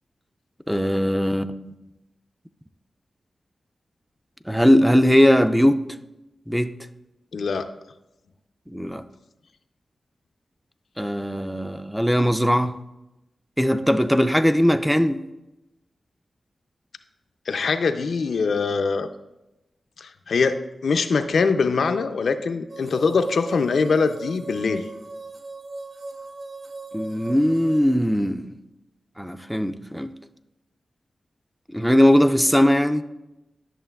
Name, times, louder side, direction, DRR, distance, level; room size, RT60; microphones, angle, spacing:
voice 1, 0.7-1.7 4.5-5.8 6.5-6.7 8.7-9.0 11.0-12.8 13.6-15.2 26.9-28.5 29.2-30.1 31.7-33.0, equal, ahead, 0.3 m, -19 dB
voice 2, 7.3-7.7 17.5-19.1 20.0-24.8, left 4 dB, 85° left, 0.4 m, -23 dB
sound 1, 22.7-27.8, right 2 dB, 75° right, 0.6 m, -38 dB
11.0 x 6.3 x 2.3 m
cardioid pair, 65°, 0 cm